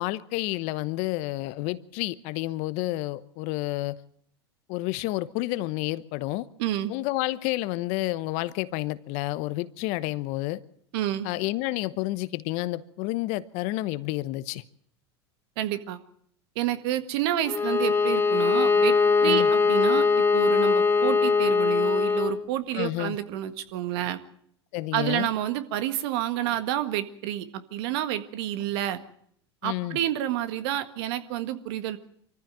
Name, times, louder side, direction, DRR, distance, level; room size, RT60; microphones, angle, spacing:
voice 1, 0.0-4.0 4.7-6.5 6.9-10.6 11.2-14.6 19.2-19.5 22.7-23.2 24.7-25.3 29.6-30.0, left 18 dB, 55° left, 16 dB, 1.0 m, -30 dB
voice 2, 6.6-6.9 10.9-11.3 15.6-16.0 16.5-18.9 19.2-24.2 24.9-29.0 29.6-32.0, right 12 dB, 65° right, 11 dB, 1.7 m, -29 dB
Bowed string instrument, 17.4-22.4, left 4 dB, 15° left, 2.1 m, -21 dB
24.0 x 14.5 x 7.5 m, 0.67 s
hypercardioid pair, 95°, 14 cm